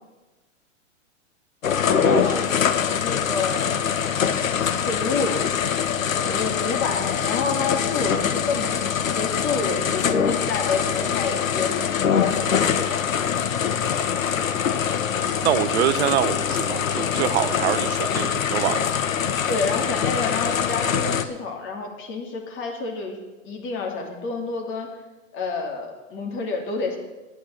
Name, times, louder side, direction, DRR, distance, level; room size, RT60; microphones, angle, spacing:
sound 1, 1.6-21.2, left 8 dB, 80° left, 1.0 m, -24 dB
voice 1, 1.7-2.5 3.0-5.5 6.1-13.0 14.3-14.6 19.5-23.2 23.4-24.9 25.3-27.0, left 3 dB, 30° left, 2 dB, 2.7 m, -29 dB
voice 2, 15.4-18.9, right 12 dB, 55° right, 14 dB, 0.8 m, -25 dB
10.5 x 8.7 x 7.6 m, 1.1 s
hypercardioid pair, 115°, 39 cm